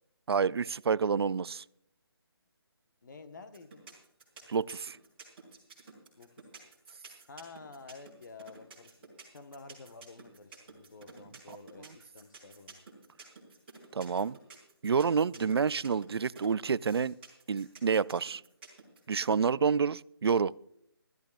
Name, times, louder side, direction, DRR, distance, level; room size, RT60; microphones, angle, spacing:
voice 1, 0.3-1.6 4.5-5.0 13.9-14.4 14.8-17.1 17.5-18.4 19.1-20.5, right 6 dB, 80° right, 0.4 m, -28 dB
voice 2, 3.0-4.0 6.2-6.4 7.3-12.8 19.3-19.8, left 4 dB, 50° left, 1.2 m, -51 dB
sound 1, 3.5-19.3, right 4 dB, 25° right, 4.7 m, -51 dB
24.5 x 13.5 x 2.4 m
hypercardioid pair, 170°, 13 cm